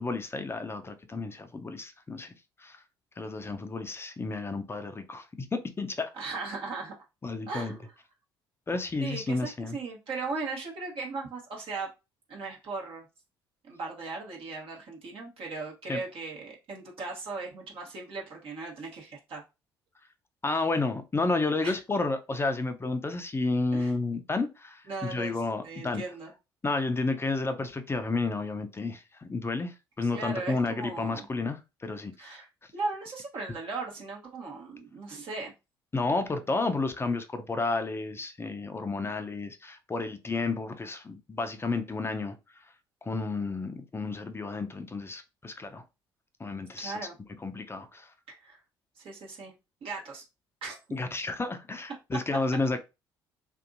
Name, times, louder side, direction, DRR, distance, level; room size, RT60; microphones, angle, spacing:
voice 1, 0.0-2.3 2.6-2.8 3.2-5.3 5.5-6.1 7.2-7.7 8.7-9.8 15.9-16.0 20.4-26.0 26.6-32.4 35.9-42.4 43.0-45.8 46.4-46.9 47.4-48.1 50.9-52.8, left 3 dB, 20° left, 0.6 m, -31 dB
voice 2, 6.1-6.9 7.5-7.9 9.0-11.9 12.3-13.1 13.6-19.4 21.6-21.7 23.7-24.0 24.9-26.3 30.0-31.3 32.2-32.5 32.7-35.5 46.8-47.2 48.4-48.6 49.0-49.6 49.8-50.2 50.6-50.8, right 3 dB, 50° right, 1.1 m, -37 dB
2.7 x 2.5 x 2.6 m
figure-of-eight pair, 50°, 12 cm